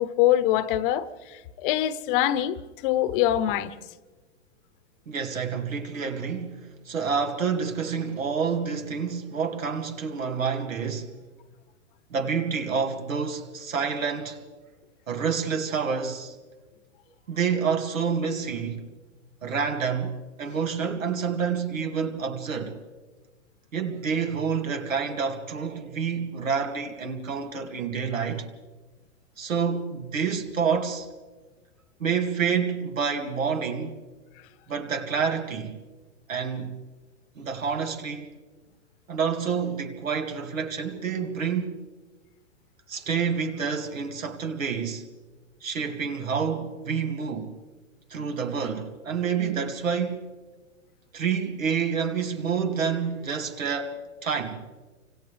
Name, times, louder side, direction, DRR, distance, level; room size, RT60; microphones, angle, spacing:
voice 1, 0.0-3.7, left 12 dB, 45° left, 1.0 m, -24 dB
voice 2, 5.1-11.2 12.1-14.4 15.1-16.4 17.3-18.9 19.4-22.8 23.7-28.5 29.4-31.1 32.0-33.9 34.7-35.8 36.3-36.8 37.4-38.3 39.1-41.8 42.9-45.0 45.6-47.5 48.1-50.2 51.1-54.0 54.2-54.6, right 6 dB, 85° right, 2.5 m, -28 dB
29.5 x 25.5 x 3.4 m
hypercardioid pair, 125°, 38 cm